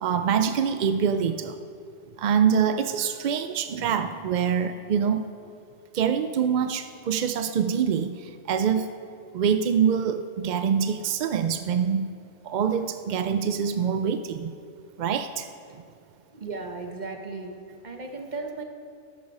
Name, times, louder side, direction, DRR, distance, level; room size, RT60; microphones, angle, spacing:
voice 1, 0.0-1.6 2.2-5.2 5.9-8.9 9.3-12.1 12.4-14.6 15.0-15.5, right 7 dB, 65° right, 9 dB, 0.4 m, -25 dB
voice 2, 16.3-17.6 17.8-18.6, right 3 dB, 40° right, 4 dB, 1.1 m, -35 dB
13.5 x 8.7 x 5.4 m, 2.4 s
omnidirectional pair, 1.2 m